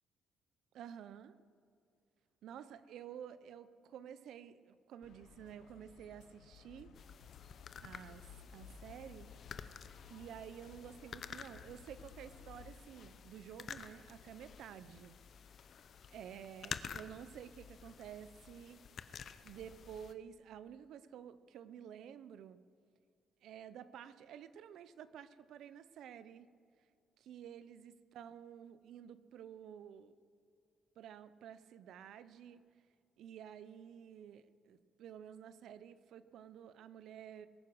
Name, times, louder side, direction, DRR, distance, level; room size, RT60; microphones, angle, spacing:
voice 1, 0.7-1.4 2.4-6.9 7.8-8.3 8.5-9.3 10.1-15.2 16.1-18.8 19.4-22.6 23.4-26.5 27.2-30.2 31.0-32.6 33.2-37.5, right 9 dB, 80° right, 14 dB, 0.7 m, -51 dB
sound 1, 5.0-12.8, left 6 dB, 80° left, 1.0 m, -57 dB
sound 2, 6.9-20.1, left 7 dB, 60° left, 0.7 m, -51 dB
21.5 x 9.6 x 6.4 m, 2.2 s
cardioid pair, 90°, 0 cm